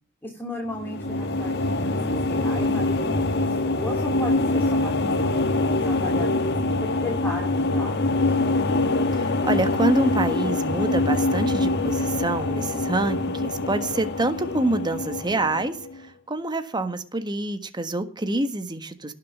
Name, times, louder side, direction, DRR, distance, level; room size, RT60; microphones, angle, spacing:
voice 1, 0.2-8.3, left 1 dB, 10° left, -1 dB, 2.9 m, -36 dB
sound 1, 0.7-16.0, left 2 dB, 50° left, 1.4 m, -24 dB
voice 2, 9.2-15.8 16.3-19.1, right 2 dB, 20° right, 8 dB, 1.4 m, -26 dB
18.5 x 6.7 x 6.2 m, 0.40 s
head